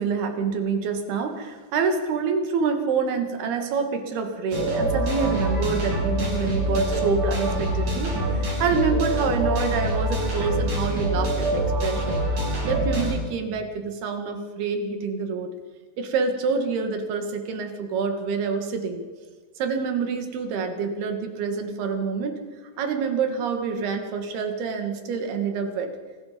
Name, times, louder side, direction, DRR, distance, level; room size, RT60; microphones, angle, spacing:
voice 1, 0.0-15.5 16.0-19.0 19.6-22.4 22.8-25.9, right 5 dB, 60° right, 6 dB, 3.5 m, -27 dB
sound 1, 4.5-13.1, right 1 dB, 45° right, 6.6 m, -25 dB
27.5 x 19.5 x 5.3 m, 1.4 s
omnidirectional pair, 5.7 m